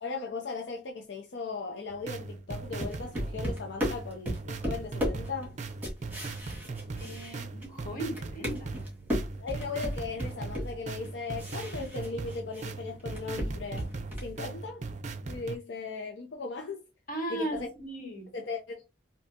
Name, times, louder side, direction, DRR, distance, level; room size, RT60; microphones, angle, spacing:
voice 1, 0.0-5.6 9.4-13.9 14.2-14.8 15.3-16.8 17.3-17.7 18.3-18.9, left 4 dB, 90° left, 0.5 m, -37 dB
sound 1, 1.9-15.6, right 3 dB, 45° right, 0.5 m, -39 dB
sound 2, 2.5-7.8 8.1-12.7 13.0-14.4, equal, 10° right, 1.6 m, -35 dB
voice 2, 7.0-8.7 17.1-18.3, right 1 dB, 55° left, 1.9 m, -37 dB
3.3 x 2.7 x 2.7 m
head